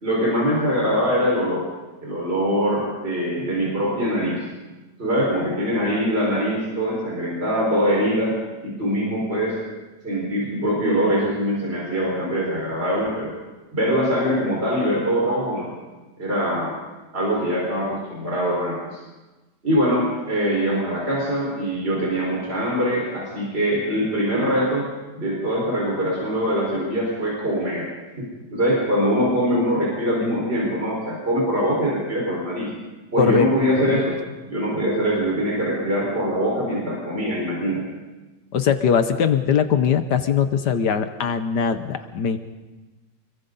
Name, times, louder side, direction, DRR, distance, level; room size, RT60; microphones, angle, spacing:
voice 1, 0.0-1.7 2.0-4.4 5.0-8.4 8.6-9.6 10.0-13.3 13.7-15.7 16.2-16.8 17.1-19.0 19.6-24.9 25.2-27.9 28.2-32.7 33.1-34.2 34.5-37.8, equal, 35° right, -5 dB, 5.7 m, -23 dB
voice 2, 33.2-33.5 33.9-34.0 38.5-42.4, left 7 dB, 75° left, 9 dB, 1.6 m, -21 dB
29.0 x 22.5 x 4.1 m, 1.1 s
omnidirectional pair, 1.8 m